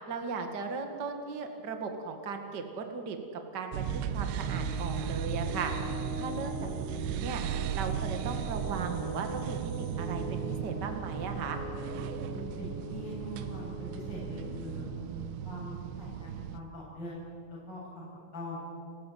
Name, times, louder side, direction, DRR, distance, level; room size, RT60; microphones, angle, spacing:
voice 1, 0.1-3.8 4.1-5.7 6.1-7.4 7.7-11.6, right 5 dB, 60° right, 5 dB, 1.1 m, -37 dB
sound 1, 3.7-16.6, right 9 dB, 80° right, 2.8 m, -36 dB
sound 2, 4.4-15.1, left 2 dB, 45° left, 5.8 m, -42 dB
voice 2, 12.0-14.8 15.4-17.2 17.5-18.1 18.3-18.6, left 1 dB, 20° left, -6 dB, 8.3 m, -43 dB
29.5 x 15.0 x 9.4 m, 2.4 s
omnidirectional pair, 5.5 m